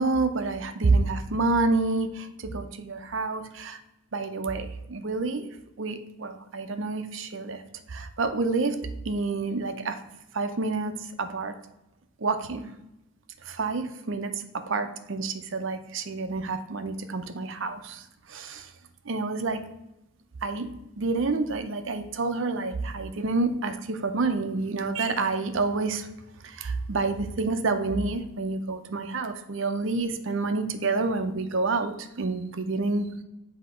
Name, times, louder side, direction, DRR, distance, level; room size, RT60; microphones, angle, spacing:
voice 1, 0.0-3.8 4.1-5.5 5.8-7.6 7.9-8.8 9.0-10.0 10.3-10.9 11.2-11.5 12.2-12.7 13.4-14.3 14.7-18.0 18.3-18.7 19.1-19.6 20.4-26.1 26.4-33.1, right 3 dB, 60° right, 8 dB, 0.6 m, -28 dB
7.9 x 2.8 x 5.0 m, 0.92 s
head